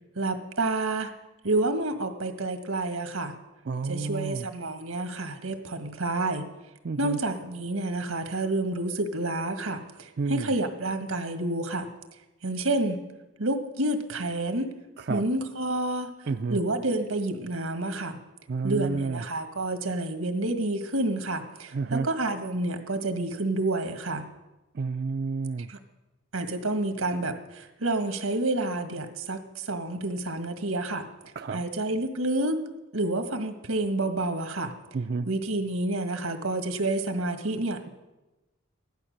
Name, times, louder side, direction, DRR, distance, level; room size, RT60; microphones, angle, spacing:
voice 1, 0.1-1.1 1.4-3.4 3.9-6.5 7.0-11.9 12.4-13.0 13.4-14.7 15.1-16.1 16.5-18.2 18.6-24.3 25.7-25.8 26.3-31.1 31.5-32.6 32.9-34.7 35.3-37.9, right 2 dB, 90° right, 6 dB, 1.7 m, -29 dB
voice 2, 3.6-4.5 6.8-7.2 10.2-10.5 15.0-15.2 16.3-16.6 18.5-19.2 21.7-22.1 24.7-25.7 31.4-31.7 34.9-35.3, right 4 dB, 50° right, 7 dB, 0.4 m, -30 dB
16.0 x 11.5 x 6.5 m, 1.1 s
head